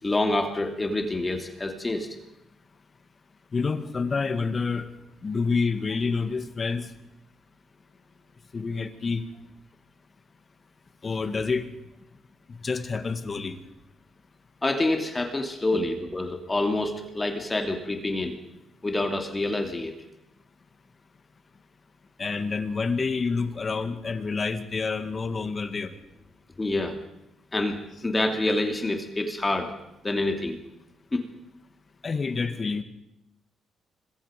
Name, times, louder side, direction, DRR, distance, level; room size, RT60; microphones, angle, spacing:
voice 1, 0.0-2.2 14.6-18.4 18.8-19.9 26.6-27.0 27.5-29.7 30.0-30.6 31.1-31.2, left 2 dB, 20° left, 5 dB, 2.8 m, -27 dB
voice 2, 3.5-4.9 5.2-6.9 8.5-9.3 11.0-11.7 12.5-13.6 15.7-15.8 22.2-25.9 32.0-32.8, left 4 dB, 35° left, 9 dB, 2.1 m, -28 dB
25.5 x 22.0 x 5.2 m, 0.86 s
cardioid pair, 90°, 0 cm